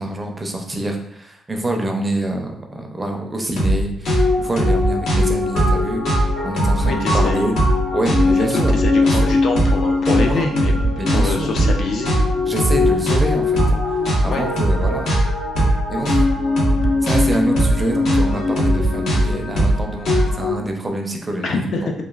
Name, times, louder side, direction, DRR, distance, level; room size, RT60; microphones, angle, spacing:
voice 1, 0.0-7.5 7.9-8.7 9.0-9.3 10.1-10.5 11.0-11.5 12.5-14.0 14.2-15.1 15.9-16.1 17.0-21.8, right 1 dB, 20° right, 2 dB, 0.5 m, -26 dB
sound 1, 3.6-3.8 4.0-20.5, left 1 dB, 80° left, 0.9 m, -18 dB
voice 2, 6.8-7.5 8.5-10.7 11.1-12.2 14.3-14.4 21.4-21.9, left 3 dB, 60° left, 2 dB, 0.4 m, -25 dB
3.0 x 2.3 x 2.3 m, 0.74 s
cardioid pair, 90°, 0 cm